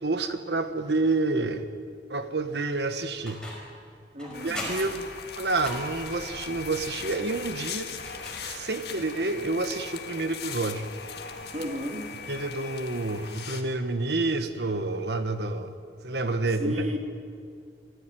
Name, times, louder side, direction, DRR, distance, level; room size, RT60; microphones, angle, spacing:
voice 1, 0.0-1.6 2.1-3.4 4.4-5.0 5.4-7.9 8.4-10.9 12.3-15.7 16.0-16.9, right 3 dB, 70° right, 9 dB, 1.4 m, -28 dB
sound 1, 3.3-3.8 4.2-6.3 8.0-8.9, left 1 dB, 5° left, 5.0 m, -39 dB
voice 2, 4.1-4.6 11.5-12.1 16.6-17.0, equal, 35° right, 3 dB, 2.6 m, -32 dB
sound 2, 4.3-13.6, left 6 dB, 65° left, 1.9 m, -39 dB
26.0 x 14.5 x 9.3 m, 2.2 s
head